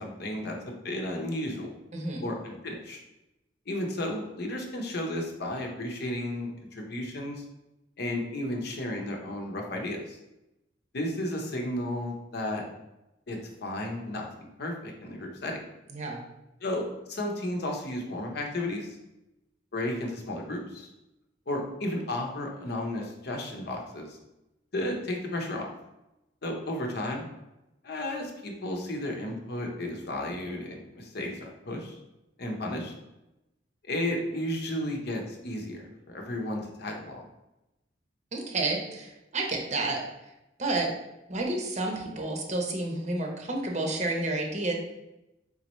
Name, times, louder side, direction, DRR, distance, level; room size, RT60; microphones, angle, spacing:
voice 1, 0.0-1.7 2.2-3.0 3.7-7.4 8.0-10.2 10.9-12.6 13.3-15.6 16.6-19.0 19.7-20.9 21.5-24.2 24.7-25.7 26.4-27.3 27.8-32.0 32.4-32.9 33.8-37.2, left 1 dB, 60° left, 2 dB, 0.8 m, -33 dB
voice 2, 1.9-2.3 15.9-16.2 38.3-40.0 40.6-40.9 41.3-44.7, right 2 dB, 40° right, 1 dB, 0.8 m, -30 dB
4.1 x 3.9 x 3.0 m, 0.93 s
head